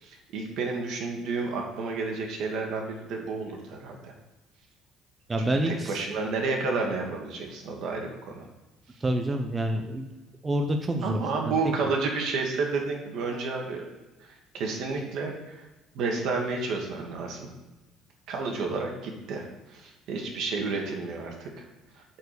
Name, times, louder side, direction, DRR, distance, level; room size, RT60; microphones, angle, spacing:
voice 1, 0.0-4.1 5.4-8.5 11.0-13.8 14.2-15.7 15.9-17.5 18.3-21.7 22.0-22.1, right 4 dB, 65° right, 2 dB, 2.0 m, -31 dB
voice 2, 5.3-6.0 9.0-10.1 10.4-11.2 11.4-11.5, right 1 dB, 20° right, 4 dB, 0.7 m, -27 dB
8.5 x 4.7 x 6.8 m, 1.1 s
cardioid pair, 130°, 0 cm